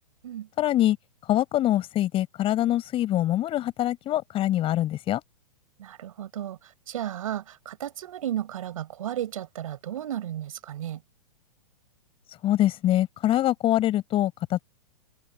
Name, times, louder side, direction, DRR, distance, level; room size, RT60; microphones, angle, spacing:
voice 1, 0.6-1.0 1.3-5.2 12.4-14.6, left 13 dB, 30° left, 6.5 m, -24 dB
voice 2, 5.8-11.0, right 11 dB, 65° right, 5.9 m, -34 dB
open air
hypercardioid pair, 115°, 19 cm